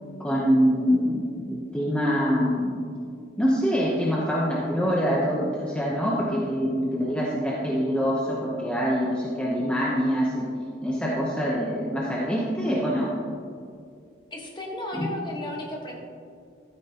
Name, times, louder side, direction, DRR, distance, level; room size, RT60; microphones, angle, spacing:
voice 1, 0.2-2.8 3.4-10.5 10.8-13.1 14.9-15.1, equal, 5° left, -5 dB, 0.9 m, -25 dB
voice 2, 14.3-16.0, left 1 dB, 25° left, -1 dB, 1.3 m, -34 dB
12.5 x 9.2 x 2.9 m, 2.3 s
head